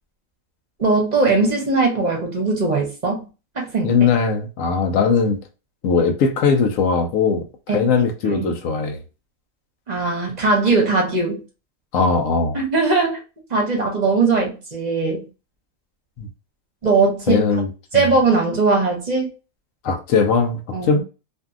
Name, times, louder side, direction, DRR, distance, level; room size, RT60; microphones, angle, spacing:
voice 1, 0.8-3.3 3.5-3.9 7.7-8.5 9.9-11.4 12.5-13.2 13.5-15.3 16.8-17.5 17.9-19.3 20.7-21.0, right 3 dB, 40° right, 0.7 m, -20 dB
voice 2, 3.8-5.4 5.8-9.0 11.9-12.6 16.2-16.3 17.3-18.1 19.8-21.0, left 5 dB, 85° left, 1.1 m, -19 dB
2.6 x 2.6 x 2.3 m
omnidirectional pair, 1.3 m